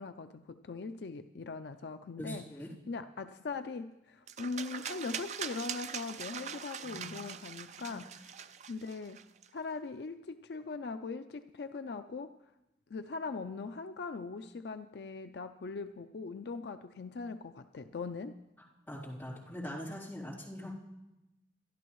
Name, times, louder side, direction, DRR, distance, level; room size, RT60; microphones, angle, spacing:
voice 1, 0.0-2.4 2.9-8.3 8.7-9.2 9.5-12.3 12.9-18.3, left 4 dB, 65° left, 9 dB, 0.4 m, -40 dB
voice 2, 2.2-2.7 6.8-7.2 7.8-8.0 18.9-20.7, equal, 10° left, -8 dB, 3.4 m, -42 dB
sound 1, 4.3-9.5, right 8 dB, 40° right, 0.4 m, -42 dB
24.0 x 11.5 x 3.1 m, 0.93 s
head